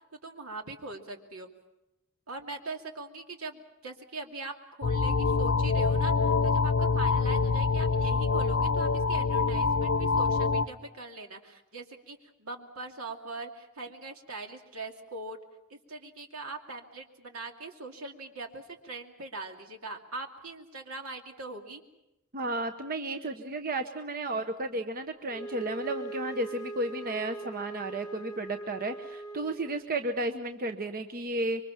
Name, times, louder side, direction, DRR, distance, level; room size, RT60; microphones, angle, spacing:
voice 1, 0.1-1.5 2.3-4.5 4.8-15.4 15.7-21.8, right 3 dB, 80° right, 3 dB, 2.6 m, -41 dB
sound 1, 4.8-10.7, left 4 dB, 65° left, 0.9 m, -25 dB
voice 2, 22.3-31.6, right 2 dB, 45° right, 6 dB, 1.0 m, -33 dB
Wind instrument woodwind instrument, 25.3-29.9, right 3 dB, 15° left, 1.0 m, -41 dB
26.5 x 24.0 x 5.9 m, 0.91 s
head